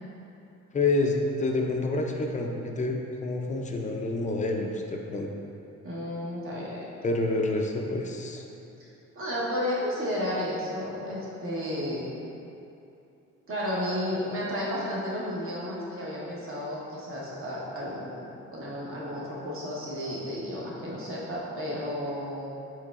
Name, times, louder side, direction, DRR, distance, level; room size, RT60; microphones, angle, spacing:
voice 1, 0.7-5.3 7.0-8.5, left 2 dB, 25° left, 2 dB, 0.4 m, -28 dB
voice 2, 5.8-6.9 8.8-8.9 9.1-12.1 13.5-22.5, left 1 dB, 45° right, -6 dB, 1.1 m, -32 dB
4.6 x 3.9 x 2.4 m, 2.8 s
cardioid pair, 90°, 30 cm